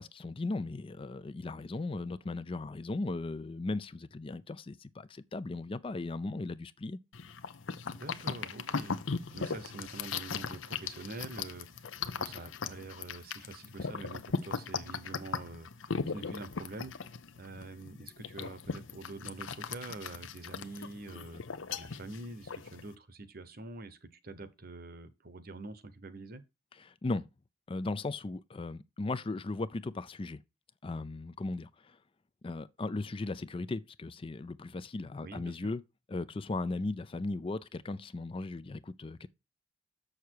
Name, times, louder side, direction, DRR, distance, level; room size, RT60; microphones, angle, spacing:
voice 1, 0.0-7.0 26.8-27.3 27.7-30.4 30.8-32.0 32.4-35.8 36.1-39.3, left 2 dB, 30° left, 0.4 m, -37 dB
sound 1, 7.1-22.9, left 5 dB, 85° left, 0.7 m, -38 dB
voice 2, 7.9-16.9 17.4-21.4 21.7-26.4 35.2-35.7, right 2 dB, 50° right, 1.0 m, -46 dB
7.0 x 6.6 x 4.6 m
head